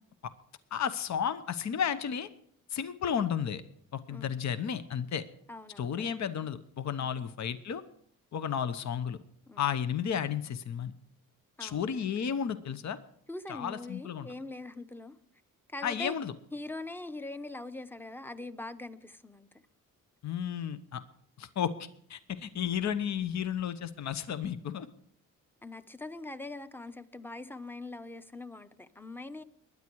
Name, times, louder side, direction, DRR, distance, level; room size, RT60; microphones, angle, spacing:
voice 1, 0.7-2.3 2.7-3.6 3.9-5.2 5.8-7.8 8.3-9.2 9.6-10.9 11.6-13.0 13.5-14.3 15.8-16.3 20.2-21.0 21.4-24.9, left 8 dB, 55° left, 11 dB, 1.0 m, -33 dB
voice 2, 5.5-6.1 9.5-9.7 11.6-12.1 13.3-15.2 15.7-16.1 16.5-19.5 25.6-29.4, left 2 dB, 5° left, 12 dB, 0.8 m, -42 dB
21.5 x 9.8 x 4.7 m, 0.63 s
cardioid pair, 110°, 33 cm